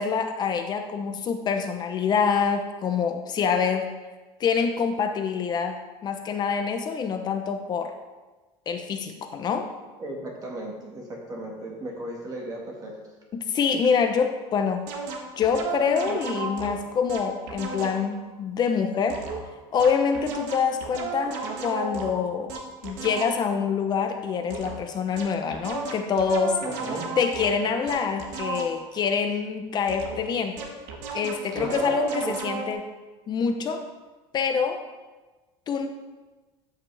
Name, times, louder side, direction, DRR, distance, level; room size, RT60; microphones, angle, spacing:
voice 1, 0.0-3.9 4.4-7.9 8.7-9.7 13.3-14.8 15.4-19.2 19.7-22.5 22.8-26.6 27.2-30.6 31.1-32.9 33.3-33.8 34.3-34.8 35.7-35.9, left 6 dB, 35° left, 6 dB, 0.8 m, -26 dB
voice 2, 10.0-13.0 26.6-27.0 31.5-31.9, right 1 dB, 30° right, -1 dB, 1.8 m, -35 dB
sound 1, 14.9-18.1 19.1-23.6 24.5-24.9 25.2-29.0 29.9-32.7, right 4 dB, 80° right, 1.4 m, -34 dB
13.0 x 5.8 x 3.4 m, 1.2 s
cardioid pair, 140°, 12 cm